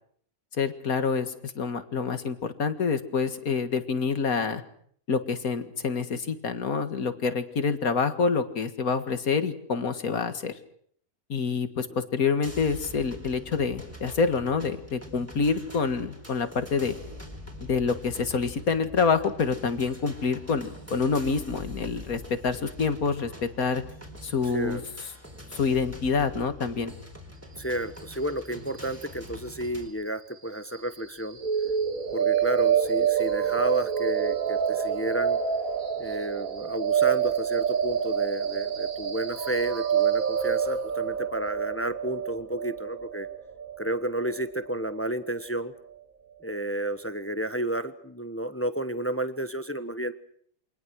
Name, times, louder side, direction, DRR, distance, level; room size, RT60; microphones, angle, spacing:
voice 1, 0.6-4.6 5.1-10.5 11.3-17.0 17.6-23.3 23.6-23.8 24.2-24.8 25.5-26.9, left 5 dB, 70° left, 9 dB, 2.2 m, -27 dB
sound 1, 12.4-29.9, left 1 dB, 10° right, 4.2 m, -44 dB
voice 2, 27.6-31.4 32.1-35.4 36.0-43.3 43.8-45.7 46.4-50.1, right 1 dB, 10° left, 10 dB, 1.1 m, -31 dB
sound 2, 31.4-45.4, right 8 dB, 65° right, 2.3 m, -27 dB
28.5 x 24.5 x 6.3 m, 0.63 s
omnidirectional pair, 1.6 m